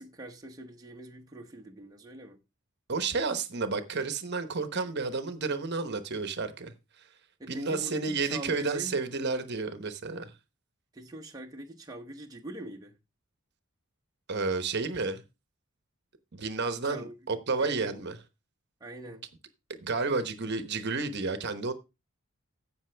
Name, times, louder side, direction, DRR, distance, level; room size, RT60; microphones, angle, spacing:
voice 1, 0.0-2.4 7.4-9.0 10.9-13.0 16.8-17.1 17.6-18.0 18.8-19.3, right 1 dB, 20° right, 1.0 m, -43 dB
voice 2, 2.9-6.7 7.5-10.3 14.3-15.2 16.3-18.2 19.8-21.7, right 4 dB, 50° right, 1.0 m, -31 dB
15.5 x 5.9 x 3.4 m
head